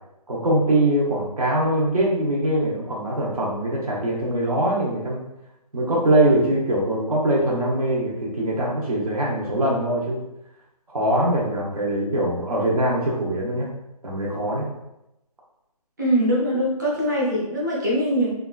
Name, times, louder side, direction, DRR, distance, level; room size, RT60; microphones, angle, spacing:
voice 1, 0.3-5.2 5.7-10.2 10.9-13.7 14.0-14.7, right 1 dB, 70° right, -4 dB, 0.9 m, -22 dB
voice 2, 16.0-18.3, equal, 30° right, -5 dB, 0.7 m, -22 dB
2.8 x 2.4 x 2.3 m, 0.87 s
figure-of-eight pair, 165°, 20 cm